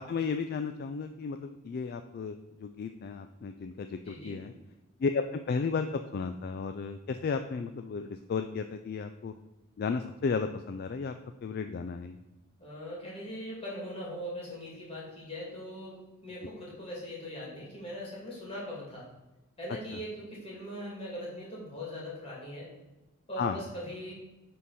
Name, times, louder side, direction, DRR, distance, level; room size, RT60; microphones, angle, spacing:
voice 1, 0.0-4.5 5.0-9.3 9.8-11.1 11.4-12.2 19.9-20.0 23.4-23.6, left 5 dB, 45° left, 7 dB, 0.3 m, -34 dB
voice 2, 4.1-4.4 12.6-19.1 19.6-22.7 23.3-24.1, equal, 25° left, -5 dB, 2.6 m, -40 dB
9.4 x 3.8 x 4.2 m, 1.0 s
head